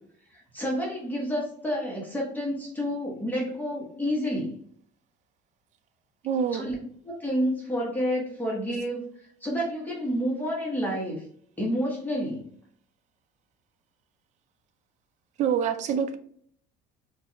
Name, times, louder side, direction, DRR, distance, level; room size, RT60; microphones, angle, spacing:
voice 1, 0.3-4.6 6.5-6.7 7.0-9.0 9.4-11.2 11.6-12.4, equal, 10° left, -4 dB, 1.1 m, -29 dB
voice 2, 6.2-6.7 15.4-16.2, right 7 dB, 40° right, 9 dB, 0.4 m, -26 dB
4.5 x 2.4 x 2.8 m, 0.62 s
cardioid pair, 160°, 18 cm